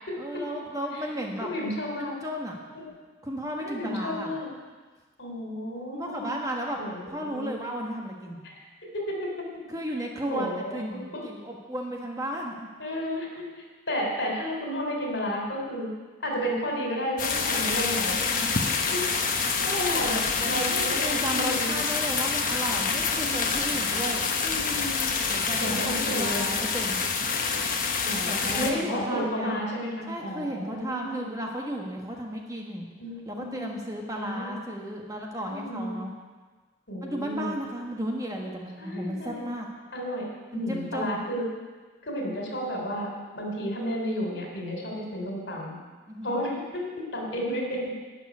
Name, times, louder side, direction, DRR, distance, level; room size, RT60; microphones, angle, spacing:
voice 1, 0.2-1.5 2.0-2.6 3.2-4.3 5.9-6.8 7.1-8.4 9.7-12.5 18.1-18.5 20.4-24.2 25.3-27.0 28.2-29.6 30.1-32.9 33.3-36.1 37.0-39.7 40.5-41.2 46.1-46.4, equal, 20° right, 0 dB, 1.4 m, -34 dB
voice 2, 1.4-2.1 2.7-2.9 3.6-4.5 5.2-6.3 6.8-7.6 8.9-9.5 10.3-11.2 12.8-15.9 16.2-18.2 18.7-21.8 22.9-23.3 24.4-25.0 25.6-26.5 27.8-31.3 33.0-33.7 34.1-34.5 35.4-35.9 36.9-37.5 38.8-39.4 39.9-40.3 40.5-41.5 42.0-43.1 43.3-45.8 46.2-46.8 47.1-47.8, equal, 80° left, 0 dB, 3.4 m, -32 dB
sound 1, 17.2-28.7, left 5 dB, 50° left, 1.1 m, -27 dB
11.5 x 6.1 x 9.3 m, 1.4 s
head